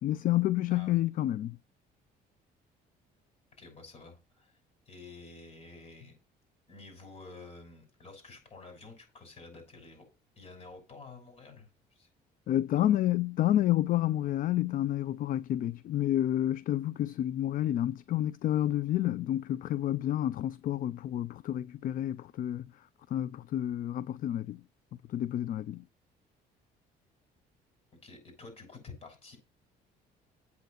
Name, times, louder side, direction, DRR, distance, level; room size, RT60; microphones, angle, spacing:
voice 1, 0.0-1.6 12.5-22.7 23.1-24.6 25.1-25.8, left 13 dB, 55° left, 0.4 m, -29 dB
voice 2, 0.7-1.0 3.6-4.6 4.9-6.1 6.7-10.1 10.4-12.1 12.7-12.9 28.0-29.4, left 3 dB, 35° left, 6.3 m, -50 dB
8.3 x 6.8 x 6.5 m
cardioid pair, 110°, 17 cm